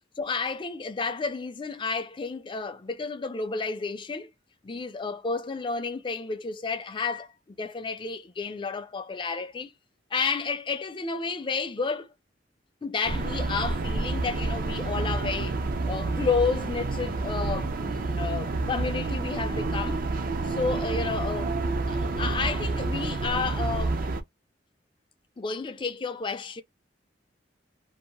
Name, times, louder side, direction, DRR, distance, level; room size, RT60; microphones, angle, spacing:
voice 1, 0.2-4.3 4.6-7.3 7.6-9.7 10.1-12.1 12.8-20.0 20.4-21.5 21.9-24.0 25.4-26.6, left 4 dB, 25° left, 0.4 m, -31 dB
sound 1, 13.0-24.2, right 3 dB, 50° right, 0.5 m, -29 dB
2.7 x 2.1 x 2.8 m
head